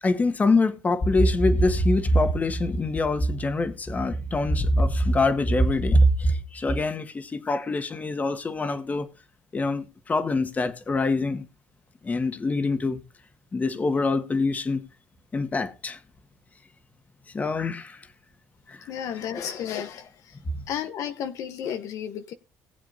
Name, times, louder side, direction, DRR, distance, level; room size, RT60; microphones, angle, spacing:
voice 1, 0.0-9.1 9.5-11.4 12.0-13.0 13.5-14.8 15.3-16.0 17.3-18.0 18.7-18.8, left 1 dB, 25° left, 1.7 m, -24 dB
voice 2, 18.9-20.3 20.7-22.3, left 9 dB, 65° left, 0.9 m, -33 dB
20.0 x 7.5 x 2.6 m
cardioid pair, 95°, 6 cm